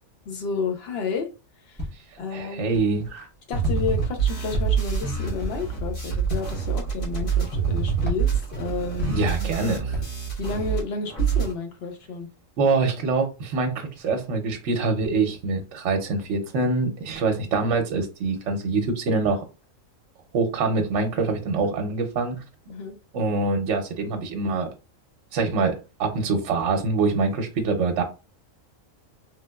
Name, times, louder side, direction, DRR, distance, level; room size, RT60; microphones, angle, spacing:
voice 1, 0.3-1.3 1.7-1.8 2.2-2.7 3.5-9.3 10.4-12.3 22.7-22.9, left 5 dB, 55° left, 0.9 m, -31 dB
Walk footsteps, 1.8-2.2 2.7-3.2 3.6-4.1 4.5-5.0 5.4-5.7 6.2-6.6 7.1-7.6 8.0-9.5 9.9-10.3, left 1 dB, 10° left, 0.7 m, -32 dB
voice 2, 2.3-3.3 9.1-9.9 12.6-19.4 20.3-22.4 23.1-24.7 25.3-28.0, right 3 dB, 65° right, 0.9 m, -24 dB
sound 1, 3.5-10.8 11.1-11.5, right 7 dB, 90° left, 1.8 m, -26 dB
3.5 x 2.6 x 2.2 m
omnidirectional pair, 1.4 m